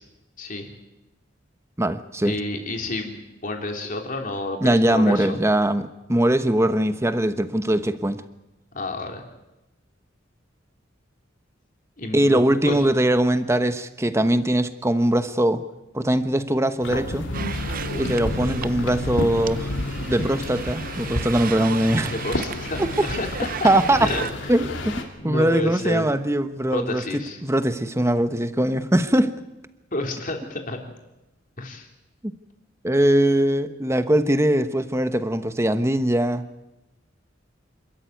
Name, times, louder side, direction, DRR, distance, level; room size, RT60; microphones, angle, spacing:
voice 1, 0.4-0.7 2.2-5.4 8.7-9.2 12.0-12.9 22.1-23.7 24.0-24.5 25.2-26.1 26.7-27.4 29.9-30.8 31.6-31.9, left 2 dB, 45° left, 3 dB, 3.4 m, -30 dB
voice 2, 1.8-2.3 4.6-8.2 12.1-15.6 15.9-17.3 18.0-22.1 22.8-22.9 23.6-24.1 24.5-24.9 25.2-29.3 32.2-32.3 32.8-36.4, right 1 dB, 15° right, 10 dB, 1.1 m, -21 dB
sound 1, 16.8-25.0, left 1 dB, 70° left, 2.8 m, -30 dB
sound 2, 17.3-24.3, right 8 dB, 50° right, 0.7 m, -36 dB
27.0 x 13.5 x 9.3 m, 0.99 s
head